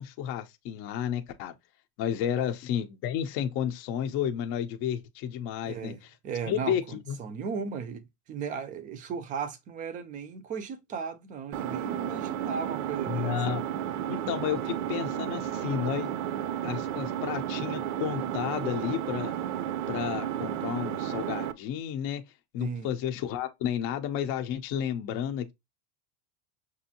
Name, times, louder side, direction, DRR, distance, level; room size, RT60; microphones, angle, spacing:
voice 1, 0.0-1.5 2.0-6.1 6.5-7.2 13.0-13.6 14.1-16.1 16.6-19.3 19.9-22.2 22.5-25.5, left 9 dB, 40° left, 0.6 m, -32 dB
voice 2, 5.6-6.0 6.2-13.4 22.6-22.9, right 6 dB, 25° right, 0.5 m, -36 dB
Engine, 11.5-21.5, right 10 dB, 65° right, 0.7 m, -32 dB
6.0 x 2.6 x 2.7 m
supercardioid pair, 165°, 35 cm